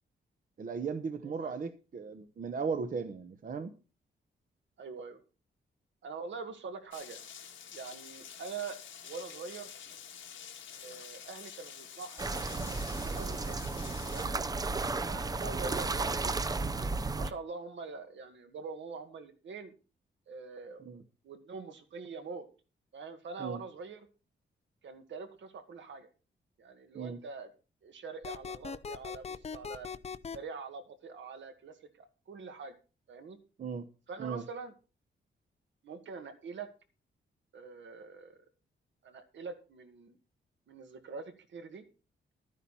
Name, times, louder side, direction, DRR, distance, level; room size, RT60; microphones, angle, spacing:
voice 1, 0.6-3.7 20.9-21.0 23.4-23.6 26.9-27.2 33.6-33.8 34.2-34.4, right 5 dB, 40° right, 9 dB, 0.9 m, -36 dB
voice 2, 1.2-1.6 4.8-5.2 6.0-7.2 7.7-8.8 9.0-9.7 10.8-12.7 13.2-14.6 15.0-16.5 17.1-19.7 20.3-20.9 21.2-22.5 22.9-24.1 24.8-26.1 26.6-27.5 27.8-29.9 30.3-32.8 33.1-33.4 34.1-34.7 35.8-36.7 37.5-38.4 39.0-40.2 40.7-41.8, right 4 dB, 70° right, 7 dB, 2.0 m, -44 dB
Rain, 6.9-14.3, left 8 dB, 75° left, 1.6 m, -48 dB
sound 1, 12.2-17.3, right 3 dB, 20° right, 0.6 m, -33 dB
sound 2, 28.2-30.4, left 6 dB, 30° left, 0.6 m, -40 dB
12.5 x 9.9 x 4.3 m, 0.34 s
wide cardioid pair, 165°, 20 cm